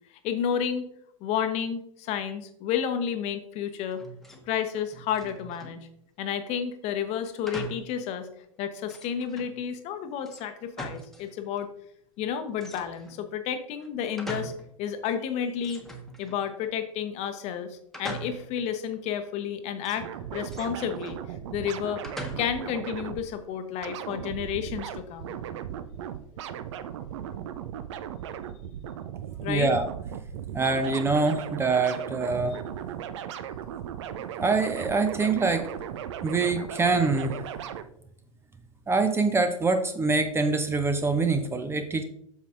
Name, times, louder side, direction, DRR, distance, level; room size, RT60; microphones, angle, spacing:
voice 1, 0.2-0.9 1.2-4.0 4.5-5.8 6.2-8.3 8.6-11.7 12.2-14.5 14.8-15.8 16.2-21.2 21.5-22.1 22.4-25.4 29.4-29.7, left 8 dB, 40° left, 9 dB, 0.9 m, -31 dB
sound 1, 3.9-4.5 4.7-5.8 7.5-7.9 8.4-8.5 8.9-9.5 10.2-11.3 11.6-11.7 12.6-13.2 13.8-14.7 15.1-15.2 15.6-16.7 17.9-18.6 19.8-21.2 22.0-22.7, right 1 dB, ahead, 1.2 m, -41 dB
sound 2, 20.0-23.3 23.8-37.8, right 9 dB, 55° right, 0.6 m, -37 dB
voice 2, 29.5-29.9 30.5-32.6 34.4-35.7 36.2-37.4 38.9-42.0, right 3 dB, 15° right, 8 dB, 0.6 m, -25 dB
8.0 x 6.5 x 2.6 m, 0.72 s
figure-of-eight pair, 90°, 18 cm